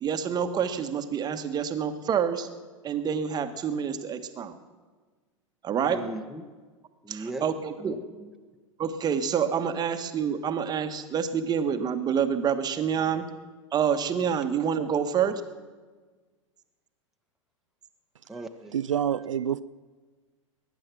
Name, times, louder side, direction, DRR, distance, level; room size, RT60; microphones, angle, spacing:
voice 1, 0.0-2.5 2.8-4.6 5.6-6.1 7.1-8.0 8.8-13.3 13.7-15.3, right 7 dB, 25° right, 1.3 m, -27 dB
voice 2, 5.8-6.4 7.0-7.5 7.8-8.3 18.3-18.7, right 2 dB, ahead, 1.3 m, -38 dB
voice 3, 18.7-19.6, right 9 dB, 75° right, 0.4 m, -27 dB
21.5 x 10.5 x 6.1 m
figure-of-eight pair, 95°, 17 cm